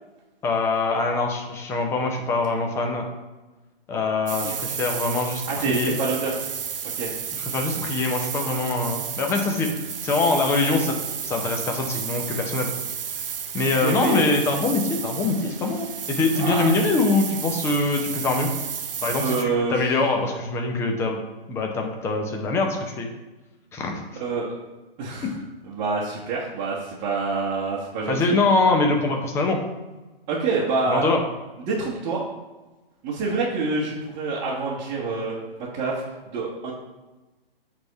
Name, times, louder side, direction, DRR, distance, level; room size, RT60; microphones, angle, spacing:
voice 1, 0.4-3.0 3.9-6.0 7.3-11.0 11.2-12.7 13.5-18.5 19.0-21.2 21.5-23.1 23.7-23.9 28.1-29.6 30.9-31.2, left 3 dB, 10° left, 2 dB, 0.6 m, -24 dB
sound 1, 4.3-19.4, right 8 dB, 65° right, 0.7 m, -32 dB
voice 2, 5.5-6.3 7.0-7.1 13.8-14.3 16.4-16.7 19.2-19.7 24.2-24.6 25.0-25.3 25.7-28.4 30.3-31.1 31.7-32.2 33.0-35.3 35.7-36.7, right 4 dB, 20° right, -7 dB, 1.1 m, -26 dB
7.9 x 3.6 x 4.5 m, 1.1 s
figure-of-eight pair, 130°, 30 cm